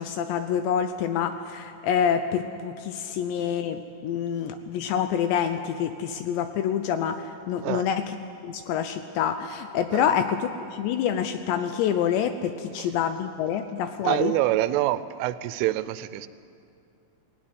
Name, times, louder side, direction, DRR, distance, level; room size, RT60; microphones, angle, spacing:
voice 1, 0.0-8.0 8.4-14.3, left 8 dB, 80° left, 8 dB, 2.6 m, -27 dB
voice 2, 14.0-16.3, right 15 dB, 85° right, 14 dB, 3.2 m, -26 dB
19.0 x 17.0 x 9.7 m, 2.5 s
omnidirectional pair, 5.6 m